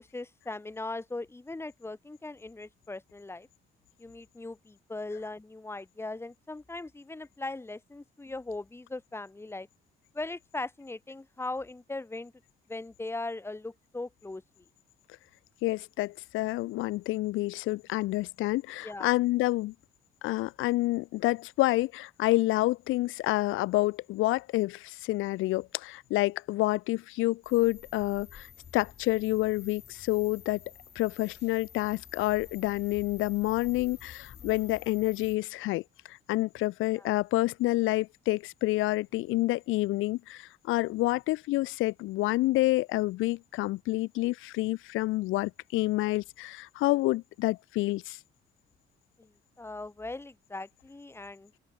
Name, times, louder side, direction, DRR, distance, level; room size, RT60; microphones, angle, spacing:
voice 1, 0.0-3.5 4.0-9.7 10.1-12.3 12.7-14.4 18.8-19.1 34.4-34.7 37.0-37.1 49.2-49.3 49.6-51.5, left 2 dB, 10° left, 1.1 m, -39 dB
voice 2, 15.6-19.7 20.2-28.5 28.7-30.6 31.0-35.8 36.1-48.2, left 18 dB, 90° left, 0.5 m, -28 dB
sound 1, 27.4-35.4, left 8 dB, 60° left, 7.7 m, -51 dB
open air
cardioid pair, 90°, 20 cm